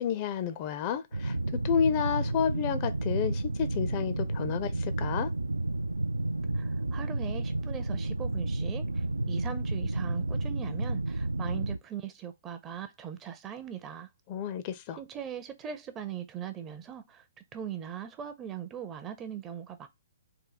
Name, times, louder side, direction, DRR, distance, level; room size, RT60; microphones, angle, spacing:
voice 1, 0.0-1.4 1.6-5.3 14.3-15.0, left 8 dB, 30° left, 0.5 m, -30 dB
tunnel wind low constant ventilation tonal, 1.1-11.8, right 2 dB, 75° right, 0.3 m, -31 dB
voice 2, 6.5-14.1 15.0-17.2 17.5-19.9, right 9 dB, 20° right, 0.5 m, -40 dB
3.8 x 2.6 x 3.8 m
figure-of-eight pair, 125°, 0 cm